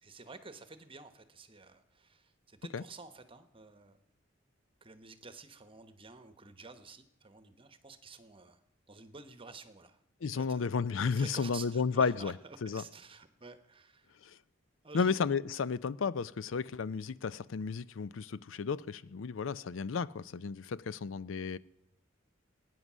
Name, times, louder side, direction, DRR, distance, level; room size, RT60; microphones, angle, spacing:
voice 1, 0.0-4.0 4.8-8.6 8.9-10.0 10.3-10.7 11.0-14.2 14.8-15.1, right 4 dB, 25° right, 1.1 m, -51 dB
voice 2, 10.2-12.3 12.6-12.8 14.9-21.6, left 5 dB, 75° left, 0.5 m, -33 dB
18.5 x 9.6 x 6.2 m
head